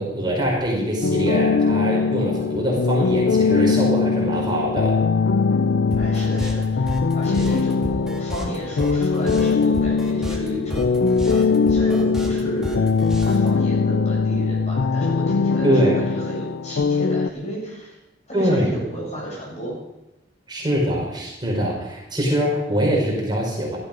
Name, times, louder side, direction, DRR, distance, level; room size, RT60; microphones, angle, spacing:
voice 1, 0.0-4.9 15.6-16.0 18.3-18.7 20.5-23.8, equal, 25° right, -2 dB, 5.1 m, -23 dB
sound 1, 1.0-17.3, left 4 dB, 75° left, 0.5 m, -21 dB
voice 2, 5.9-12.9 13.2-18.0 18.3-19.8, right 1 dB, 40° left, -3 dB, 7.7 m, -33 dB
sound 2, 5.9-13.5, equal, 5° right, 2.5 m, -32 dB
16.0 x 13.5 x 5.2 m, 0.96 s
head